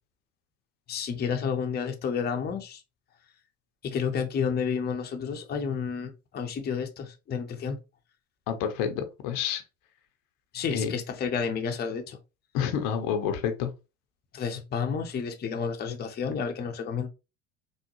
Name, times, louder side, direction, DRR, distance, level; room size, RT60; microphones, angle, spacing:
voice 1, 0.9-2.8 3.8-7.8 10.5-12.2 14.3-17.1, left 6 dB, 25° left, 0.7 m, -30 dB
voice 2, 8.5-9.6 10.7-10.9 12.5-13.7, left 8 dB, 60° left, 0.7 m, -28 dB
3.6 x 2.1 x 3.0 m
hypercardioid pair, 80°, 36 cm